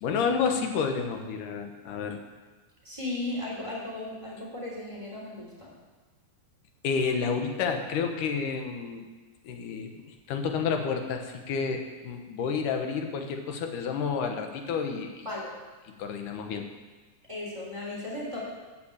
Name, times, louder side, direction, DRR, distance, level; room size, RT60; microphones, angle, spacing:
voice 1, 0.0-2.2 6.8-9.1 9.4-15.3 16.0-16.7, left 5 dB, 70° left, 5 dB, 2.5 m, -30 dB
voice 2, 2.8-5.7 15.2-15.6 17.3-18.4, left 2 dB, 10° right, -4 dB, 2.9 m, -36 dB
13.0 x 6.0 x 8.4 m, 1.3 s
omnidirectional pair, 4.0 m